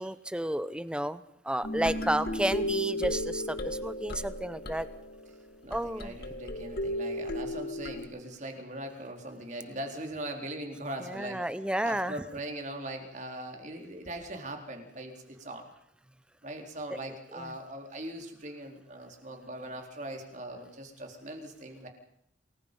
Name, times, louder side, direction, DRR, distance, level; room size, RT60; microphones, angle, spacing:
voice 1, 0.0-4.9 5.7-6.1 11.0-12.2 17.3-17.5, right 1 dB, 5° right, 14 dB, 0.8 m, -31 dB
sound 1, 1.6-8.1, left 1 dB, 60° left, 2.0 m, -35 dB
voice 2, 5.6-11.5 11.8-15.6 16.4-21.9, right 1 dB, 40° right, 3 dB, 4.3 m, -40 dB
28.0 x 20.5 x 5.5 m, 0.72 s
head